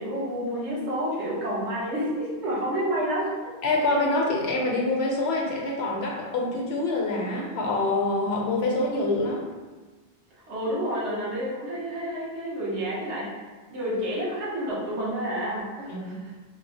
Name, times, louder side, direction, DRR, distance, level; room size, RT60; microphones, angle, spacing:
voice 1, 0.0-3.3 10.5-16.3, equal, 80° right, -6 dB, 1.2 m, -29 dB
voice 2, 3.6-9.5 15.9-16.2, left 2 dB, 70° left, -1 dB, 0.8 m, -26 dB
3.6 x 2.0 x 2.7 m, 1.3 s
omnidirectional pair, 1.2 m